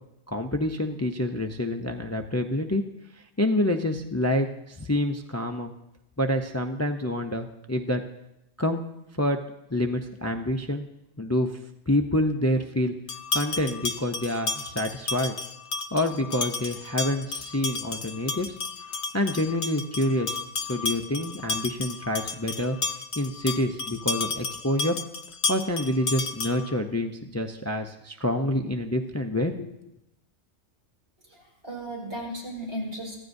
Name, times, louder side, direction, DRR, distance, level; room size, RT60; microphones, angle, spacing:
voice 1, 0.3-2.8 3.4-5.7 6.2-8.0 8.6-8.8 9.2-9.4 9.7-10.8 11.2-11.5 11.9-12.9 13.3-15.3 15.9-18.6 19.1-20.3 20.7-22.8 23.2-25.0 25.5-29.7, left 1 dB, 20° left, 5 dB, 0.5 m, -27 dB
sound 1, 13.1-26.8, left 4 dB, 75° left, 1.1 m, -32 dB
voice 2, 31.3-33.2, equal, 75° right, -3 dB, 5.0 m, -35 dB
24.0 x 15.5 x 2.7 m, 0.87 s
omnidirectional pair, 1.2 m